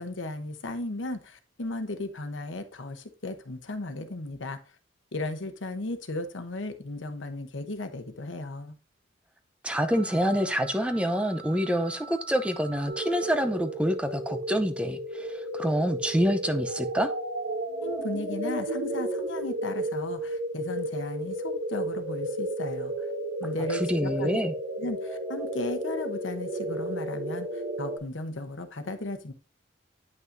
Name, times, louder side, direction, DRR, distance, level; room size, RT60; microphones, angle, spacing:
voice 1, 0.0-4.6 5.1-8.8 17.8-23.1 23.4-24.4 24.8-29.3, left 2 dB, 75° left, 1.0 m, -35 dB
voice 2, 9.6-17.1 23.7-24.5, equal, 5° right, 0.6 m, -27 dB
sound 1, 9.8-13.9, right 6 dB, 65° right, 1.5 m, -46 dB
sound 2, 12.9-28.0, right 1 dB, 80° right, 2.5 m, -33 dB
9.3 x 5.8 x 2.7 m
head